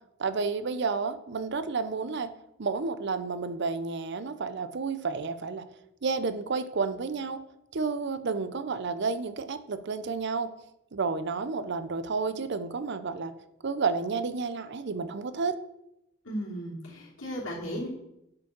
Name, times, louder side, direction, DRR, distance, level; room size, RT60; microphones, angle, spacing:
voice 1, 0.2-2.3 2.6-5.6 6.0-7.4 7.7-10.5 10.9-13.3 13.6-15.6, right 4 dB, 60° right, 12 dB, 0.6 m, -31 dB
voice 2, 16.2-17.9, equal, 80° left, -3 dB, 3.0 m, -35 dB
8.5 x 5.1 x 5.9 m, 0.85 s
head